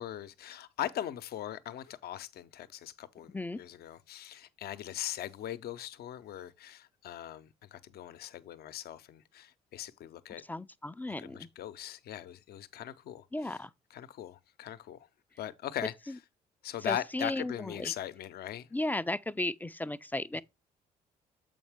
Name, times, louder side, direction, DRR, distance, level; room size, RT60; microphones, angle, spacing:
voice 1, 0.0-10.4 11.2-13.6 13.9-15.1 15.4-15.9 16.6-18.7, left 11 dB, 65° left, 0.7 m, -40 dB
voice 2, 10.5-11.5 13.3-13.7 16.9-17.9 18.7-20.4, left 1 dB, 10° left, 0.4 m, -35 dB
7.1 x 5.3 x 3.5 m
hypercardioid pair, 55°, 18 cm